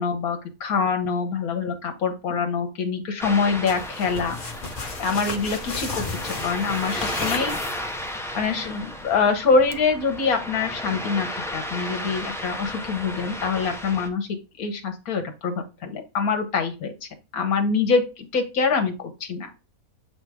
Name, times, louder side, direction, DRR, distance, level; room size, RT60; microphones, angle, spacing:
voice 1, 0.0-4.4 5.0-7.6 8.3-14.3 14.6-15.5 15.8-19.5, left 5 dB, 80° left, 5 dB, 1.5 m, -25 dB
Ocean, 3.2-14.1, left 1 dB, 5° left, 0.5 m, -34 dB
sound 1, 3.7-8.1, left 4 dB, 40° left, 1.2 m, -33 dB
7.9 x 4.3 x 3.4 m, 0.30 s
omnidirectional pair, 1.5 m